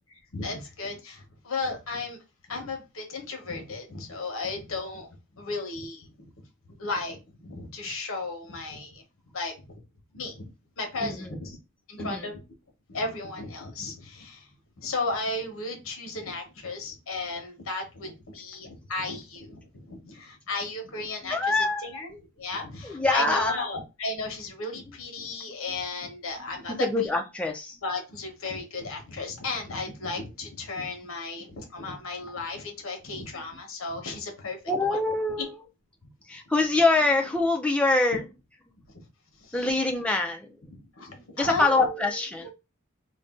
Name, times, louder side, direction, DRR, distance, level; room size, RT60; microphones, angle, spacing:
voice 1, 0.1-2.2 2.5-5.1 5.3-6.3 6.8-9.0 9.3-9.8 10.1-10.5 10.8-11.6 11.9-12.4 12.9-14.5 14.8-26.9 27.8-34.6 34.8-35.0 39.4-39.7 40.8-42.5, left 3 dB, 65° left, 0.9 m, -35 dB
voice 2, 11.0-11.4 12.0-12.3 21.3-22.0 22.8-23.6 26.7-27.8 33.1-33.2 34.7-35.5 36.3-38.2 39.5-40.5 41.3-42.5, left 2 dB, 5° left, 0.4 m, -25 dB
2.5 x 2.2 x 3.6 m
head